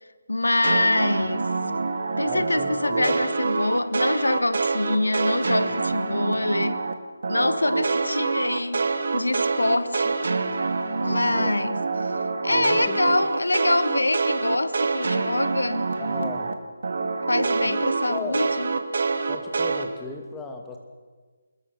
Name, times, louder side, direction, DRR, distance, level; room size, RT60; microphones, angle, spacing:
voice 1, 0.3-1.5 2.2-6.8 7.3-10.2 11.0-15.9 17.3-18.7, left 2 dB, 75° left, 1.0 m, -25 dB
sound 1, 0.6-6.9 7.2-16.5 16.8-19.8, right 4 dB, 55° right, 2.0 m, -26 dB
voice 2, 2.2-3.2 6.3-6.4 11.0-11.5 12.5-13.2 16.0-16.5 17.6-17.8 18.1-18.4 19.3-20.8, left 4 dB, 10° left, 2.4 m, -37 dB
26.5 x 21.0 x 6.5 m
figure-of-eight pair, 150°, 0 cm